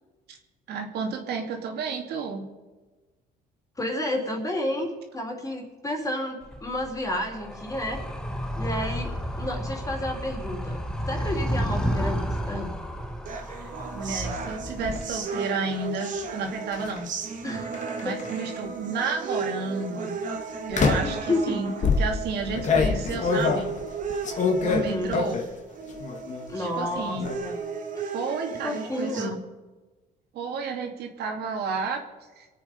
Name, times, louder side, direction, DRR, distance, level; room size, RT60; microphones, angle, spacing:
voice 1, 0.7-2.5 13.6-17.1 18.0-20.2 20.7-21.7 22.0-23.7 24.6-25.4 26.6-27.3 28.0-29.3 30.3-32.0 32.4-32.5, right 4 dB, 75° right, 2 dB, 2.8 m, -32 dB
voice 2, 3.8-8.0 8.6-10.8 11.1-12.7 17.4-18.3 21.0-21.7 24.7-25.2 26.5-27.6 28.0-28.1 28.6-29.4, left 1 dB, 20° left, 1 dB, 3.8 m, -31 dB
Animal, 6.4-15.0, equal, 5° left, 1.6 m, -31 dB
sound 1, 13.3-29.3, right 5 dB, 50° right, 2.2 m, -35 dB
sound 2, 14.4-15.0 16.7-17.0 17.7-18.6 19.3-19.6 20.7-21.2 21.8-25.6 25.9-26.5 26.7-27.3, left 4 dB, 45° left, 2.0 m, -26 dB
25.0 x 8.6 x 5.4 m, 1.2 s
cardioid pair, 110°, 17 cm